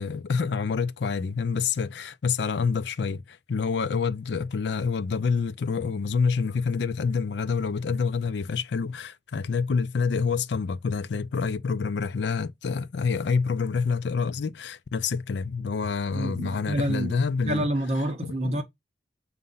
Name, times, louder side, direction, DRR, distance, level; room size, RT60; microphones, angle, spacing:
voice 1, 0.0-17.7 18.2-18.5, left 5 dB, 70° left, 0.4 m, -27 dB
voice 2, 16.1-17.2 17.4-18.6, right 1 dB, 35° right, 1.0 m, -28 dB
6.6 x 2.7 x 5.5 m
head